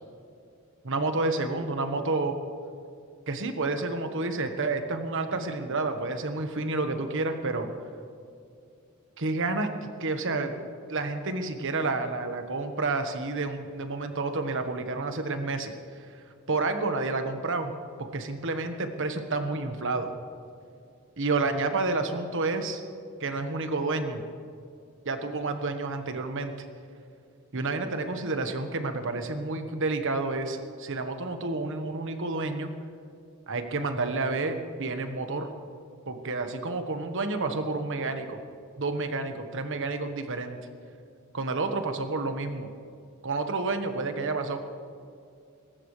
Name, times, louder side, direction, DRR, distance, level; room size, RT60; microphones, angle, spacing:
voice 1, 0.8-2.4 3.3-7.7 9.2-9.7 10.0-10.6 10.9-15.7 16.5-17.7 18.0-20.1 21.2-22.8 23.2-24.2 25.0-26.5 27.5-32.7 33.5-35.5 36.1-38.4 38.8-40.6 41.3-42.7 43.2-44.6, right 3 dB, 65° right, 7 dB, 1.3 m, -30 dB
20.5 x 18.0 x 3.3 m, 2.4 s
head